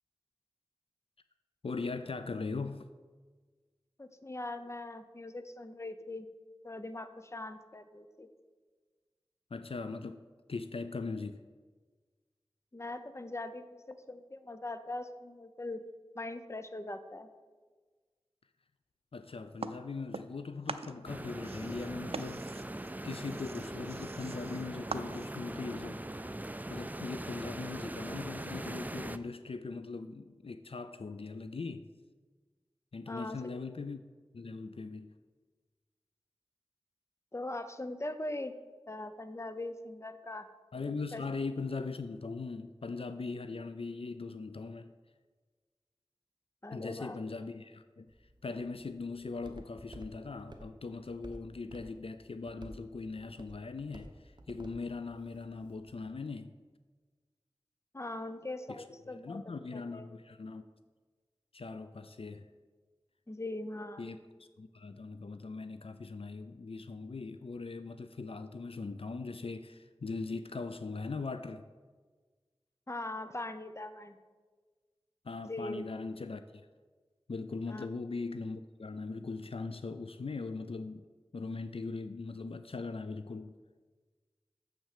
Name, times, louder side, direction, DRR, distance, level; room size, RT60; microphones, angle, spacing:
voice 1, 1.6-2.9 9.5-10.2 10.5-11.4 19.1-22.5 23.0-26.1 26.7-31.9 32.9-34.0 34.3-35.1 40.7-44.9 46.7-56.6 58.7-60.7 61.5-62.5 64.0-71.7 75.2-76.7 77.3-81.0 81.3-83.5, left 4 dB, 70° left, 10 dB, 0.4 m, -40 dB
voice 2, 4.0-6.3 6.6-8.3 12.7-15.8 16.1-17.3 33.1-33.4 37.3-38.5 38.9-40.5 41.1-41.2 46.6-47.2 57.9-59.4 59.7-60.1 63.3-64.1 72.9-74.2 75.5-75.9 77.7-77.9, left 2 dB, 30° left, 10 dB, 0.6 m, -41 dB
sound 1, 19.6-20.4 20.7-25.5, right 4 dB, 80° right, 0.4 m, -43 dB
sound 2, 21.0-29.2, right 1 dB, 15° right, 0.4 m, -41 dB
Walk footsteps, 48.1-56.0, right 1 dB, 50° right, 1.0 m, -54 dB
7.3 x 6.2 x 6.6 m, 1.4 s
wide cardioid pair, 50°, 10 cm